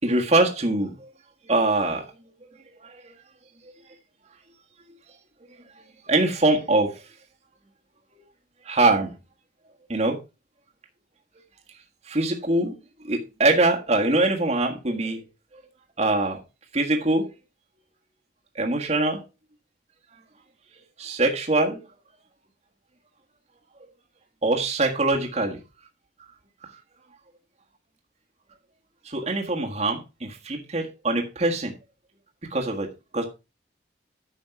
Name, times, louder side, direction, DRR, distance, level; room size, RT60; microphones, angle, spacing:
voice 1, 0.0-1.1 1.5-2.0 2.8-3.0 6.1-7.0 8.6-9.1 9.9-10.2 12.1-12.7 13.1-15.2 16.0-16.4 16.7-17.2 18.5-19.2 21.0-21.8 24.4-25.6 29.0-31.7 32.5-33.3, right 2 dB, 40° right, 1.5 m, -23 dB
9.8 x 6.4 x 4.6 m
head